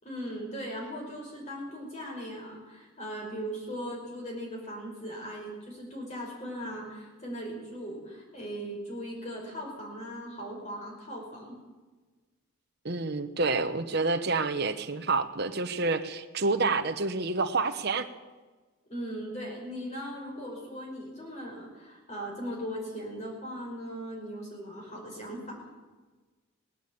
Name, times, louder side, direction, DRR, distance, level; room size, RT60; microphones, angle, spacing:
voice 1, 0.0-11.6 18.9-25.6, equal, 30° left, -1 dB, 5.2 m, -39 dB
voice 2, 12.8-18.1, right 3 dB, 50° right, 7 dB, 1.0 m, -28 dB
19.0 x 16.0 x 8.7 m, 1.3 s
head